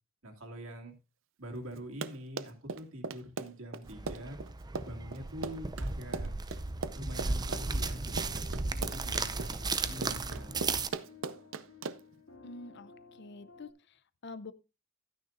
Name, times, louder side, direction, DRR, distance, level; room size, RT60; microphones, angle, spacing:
voice 1, 0.2-0.9 1.4-4.4 4.8-6.4 6.9-10.5, equal, 90° right, 2.5 m, -45 dB
Run, 1.8-12.2, right 4 dB, 70° right, 0.6 m, -39 dB
sound 1, 3.9-10.9, right 3 dB, 20° right, 0.5 m, -35 dB
sound 2, 7.3-13.7, left 3 dB, 90° left, 3.6 m, -55 dB
voice 2, 12.4-14.5, left 3 dB, 60° left, 0.7 m, -47 dB
13.0 x 9.5 x 2.6 m
head